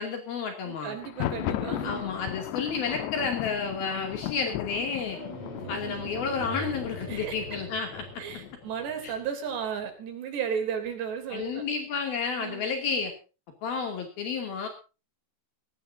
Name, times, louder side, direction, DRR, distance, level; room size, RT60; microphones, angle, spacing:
voice 1, 0.0-0.9 1.8-5.2 5.7-8.1 9.0-9.1 11.3-13.1 13.6-14.7, left 5 dB, 60° left, 3 dB, 4.3 m, -31 dB
voice 2, 0.6-2.1 5.2-6.2 7.1-7.4 8.2-11.6 12.4-12.7, right 7 dB, 75° right, 5 dB, 5.3 m, -35 dB
Thunder, 0.9-8.7, left 14 dB, 85° left, 3.0 m, -36 dB
sound 1, 5.1-10.1 10.8-10.9 11.3-11.6, left 1 dB, 35° left, 5.8 m, -41 dB
20.0 x 17.0 x 2.7 m, 0.33 s
omnidirectional pair, 5.0 m